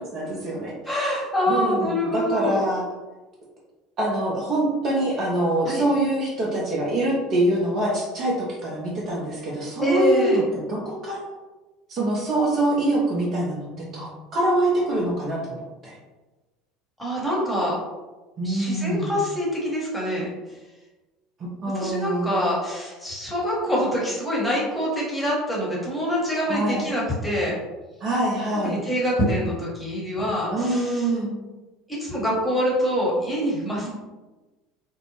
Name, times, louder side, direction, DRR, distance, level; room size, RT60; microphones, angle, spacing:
voice 1, 0.0-1.2 1.5-2.8 4.0-11.4 11.9-16.0 18.4-19.1 21.4-22.4 26.5-26.9 28.0-28.8 30.5-31.3 33.8-33.9, right 1 dB, 40° right, -4 dB, 0.6 m, -25 dB
voice 2, 0.9-2.6 5.7-5.8 9.8-10.4 17.0-17.8 18.4-20.6 21.7-27.6 28.6-31.0 32.0-33.9, equal, 5° left, -5 dB, 1.0 m, -25 dB
2.6 x 2.0 x 2.9 m, 1.2 s
figure-of-eight pair, 65°, 0 cm